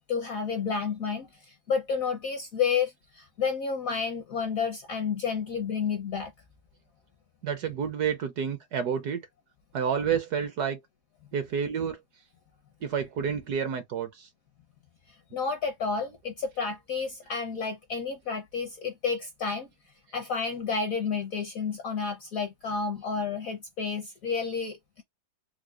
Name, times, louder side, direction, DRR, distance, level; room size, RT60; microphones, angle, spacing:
voice 1, 0.0-6.3 15.1-19.7 20.1-25.0, left 5 dB, 65° left, 0.8 m, -31 dB
voice 2, 7.4-9.2 9.7-10.8 11.3-12.0 12.8-14.3, right 7 dB, 65° right, 1.0 m, -29 dB
4.7 x 2.1 x 2.3 m
omnidirectional pair, 2.2 m